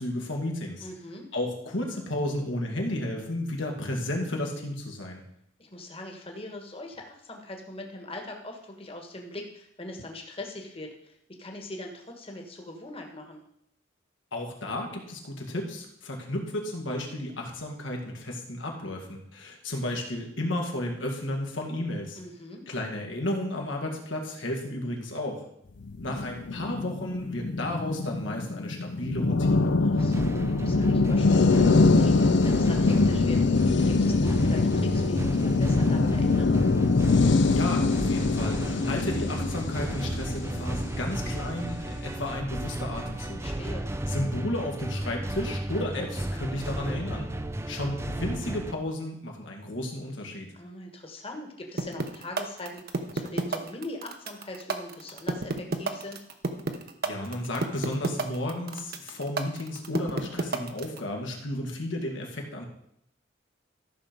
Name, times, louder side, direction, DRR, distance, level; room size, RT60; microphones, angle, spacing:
voice 1, 0.0-0.9 1.3-5.2 14.3-22.2 22.7-25.4 26.0-29.8 37.5-43.8 44.1-47.3 47.7-50.5 57.0-62.7, left 1 dB, 85° left, 1 dB, 2.1 m, -33 dB
voice 2, 0.8-1.3 5.6-13.4 22.1-22.6 29.8-33.6 33.8-36.6 43.3-43.9 50.5-56.2, left 1 dB, 30° left, 2 dB, 1.5 m, -41 dB
sound 1, 25.8-41.3, left 3 dB, 65° left, 0.6 m, -24 dB
sound 2, 30.0-48.7, right 1 dB, 15° right, 0.5 m, -33 dB
sound 3, 51.8-61.0, right 3 dB, 55° right, 1.0 m, -29 dB
13.5 x 6.1 x 5.2 m, 0.73 s
head